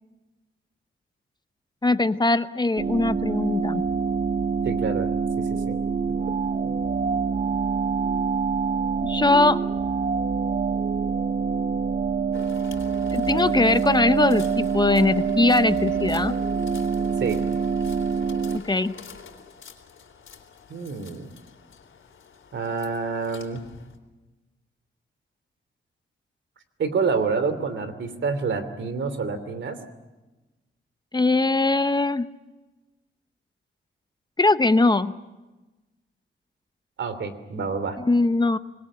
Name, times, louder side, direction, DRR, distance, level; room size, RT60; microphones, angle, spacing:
voice 1, 1.8-3.8 9.0-9.6 13.1-16.4 18.5-18.9 31.1-32.3 34.4-35.1 38.1-38.6, left 2 dB, 20° left, 11 dB, 0.8 m, -21 dB
sound 1, 2.8-18.6, right 5 dB, 45° right, 0.8 m, -25 dB
voice 2, 4.6-5.1 5.4-5.8 6.6-6.7 17.2-17.4 20.7-21.3 22.5-23.6 26.8-29.8 37.0-38.0, right 5 dB, 70° right, 11 dB, 2.9 m, -27 dB
sound 2, 12.3-24.0, left 6 dB, 80° left, 3.7 m, -45 dB
25.5 x 21.0 x 8.7 m, 1.1 s
wide cardioid pair, 110°, 20 cm